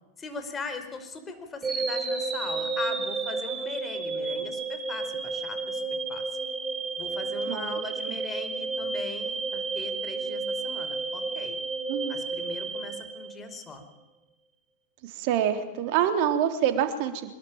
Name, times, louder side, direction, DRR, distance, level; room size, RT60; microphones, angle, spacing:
voice 1, 0.2-5.8 6.1-6.2 7.0-11.6 12.1-13.8, left 3 dB, 20° left, 7 dB, 4.9 m, -40 dB
sound 1, 1.6-13.7, right 3 dB, 15° right, 4.4 m, -32 dB
voice 2, 7.5-7.8 11.9-12.2 15.0-17.3, right 9 dB, 45° right, 6 dB, 3.5 m, -26 dB
25.0 x 21.5 x 9.0 m, 0.98 s
figure-of-eight pair, 90°, 0 cm